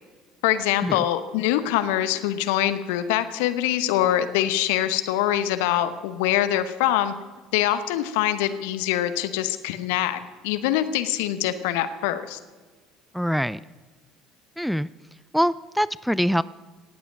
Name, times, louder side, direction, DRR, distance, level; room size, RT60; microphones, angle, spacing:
voice 1, 0.4-7.1 7.5-12.4, left 12 dB, 65° left, 12 dB, 0.8 m, -24 dB
voice 2, 13.1-13.6 14.6-14.9 15.3-16.4, equal, ahead, 19 dB, 0.3 m, -23 dB
17.5 x 8.3 x 6.2 m, 1.3 s
figure-of-eight pair, 60°, 0 cm